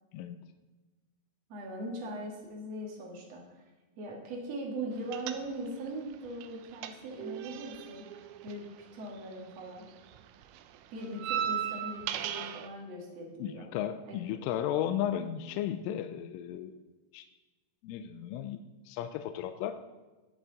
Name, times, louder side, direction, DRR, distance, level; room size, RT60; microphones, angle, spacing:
voice 1, 1.5-3.6 4.0-8.0 8.4-8.7 8.9-9.9 10.9-13.7 14.1-14.2, right 1 dB, 60° right, -1 dB, 1.8 m, -40 dB
sound 1, 5.1-5.9 6.1-9.5 9.8-12.7, right 10 dB, 80° right, 3.0 m, -37 dB
voice 2, 13.4-16.8 17.1-17.3 17.8-18.6 18.9-19.8, left 10 dB, 80° left, 8 dB, 3.0 m, -34 dB
18.5 x 6.2 x 4.0 m, 1.2 s
omnidirectional pair, 5.9 m